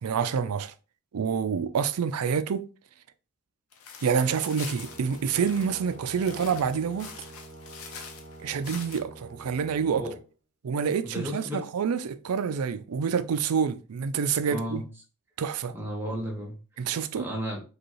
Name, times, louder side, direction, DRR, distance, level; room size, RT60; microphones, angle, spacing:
voice 1, 0.0-0.7 1.1-2.6 4.0-7.1 8.4-10.0 10.6-14.8 15.4-15.7 16.8-17.3, right 6 dB, 80° right, 0.4 m, -27 dB
sound 1, 3.7-9.0, left 6 dB, 75° left, 0.7 m, -45 dB
Brass instrument, 4.7-10.2, right 2 dB, 50° right, 1.1 m, -47 dB
voice 2, 11.0-11.6 14.5-14.9 15.7-16.6 17.2-17.6, equal, 10° right, 1.0 m, -33 dB
5.0 x 2.4 x 3.0 m
head